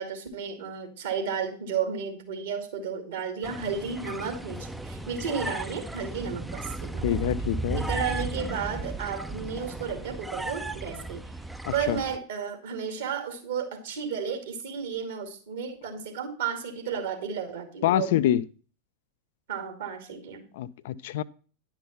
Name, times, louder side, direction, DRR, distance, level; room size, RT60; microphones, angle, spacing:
voice 1, 0.0-7.0 7.8-11.3 11.7-18.2 19.5-20.4, right 6 dB, 60° right, 2.4 m, -33 dB
sound 1, 3.4-12.2, right 2 dB, 5° right, 0.5 m, -35 dB
voice 2, 7.0-7.8 11.6-12.0 17.8-18.4 20.5-21.2, left 12 dB, 55° left, 0.4 m, -26 dB
10.5 x 5.9 x 5.8 m
figure-of-eight pair, 90°, 0 cm